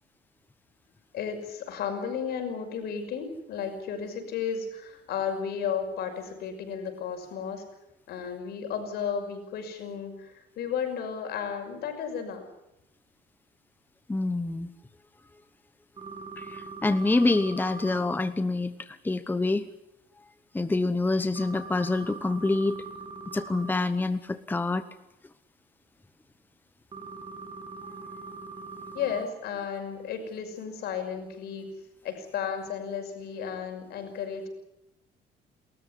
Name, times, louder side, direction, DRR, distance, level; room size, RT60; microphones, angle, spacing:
voice 1, 1.1-7.6 8.1-12.5 28.9-31.7 32.0-34.5, left 7 dB, 70° left, 5 dB, 6.0 m, -33 dB
voice 2, 14.1-14.7 16.4-19.7 20.5-22.8 23.3-24.8, left 2 dB, 10° left, 11 dB, 1.0 m, -26 dB
sound 1, 16.0-18.1 21.4-23.7 26.9-29.3, right 4 dB, 30° right, 3.8 m, -41 dB
30.0 x 14.0 x 9.9 m, 0.89 s
cardioid pair, 110°, 17 cm